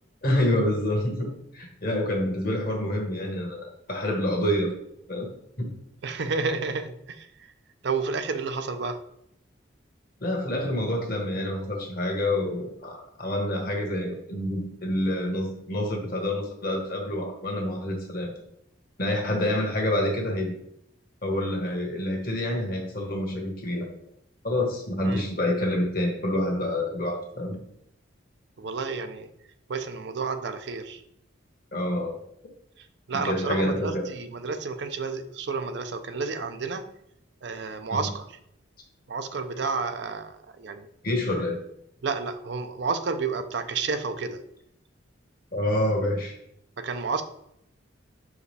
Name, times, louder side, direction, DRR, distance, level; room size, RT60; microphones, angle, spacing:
voice 1, 0.2-4.7 5.1-5.3 5.6-5.7 10.2-18.3 19.0-20.6 21.2-23.9 24.4-27.6 31.7-32.2 33.1-34.0 37.9-38.0 41.0-41.6 45.5-46.4, left 1 dB, 50° left, 2 dB, 1.4 m, -27 dB
voice 2, 6.0-7.5 7.8-9.0 25.1-25.3 28.6-29.3 29.7-31.0 32.8-36.8 37.4-38.3 39.1-40.9 42.0-44.4 46.8-47.2, right 4 dB, 60° right, 8 dB, 0.5 m, -31 dB
6.2 x 4.8 x 3.4 m, 0.75 s
head